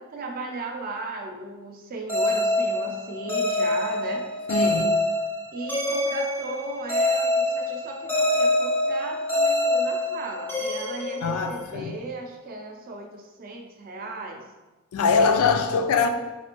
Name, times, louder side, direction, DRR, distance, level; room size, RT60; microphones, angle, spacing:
voice 1, 0.0-4.3 5.5-14.4, right 2 dB, 40° right, 0.5 m, -36 dB
sound 1, 2.1-11.9, left 1 dB, 10° left, 0.5 m, -25 dB
voice 2, 4.5-5.0 11.2-11.9 14.9-16.1, left 5 dB, 75° left, 0.3 m, -22 dB
4.1 x 2.5 x 2.9 m
head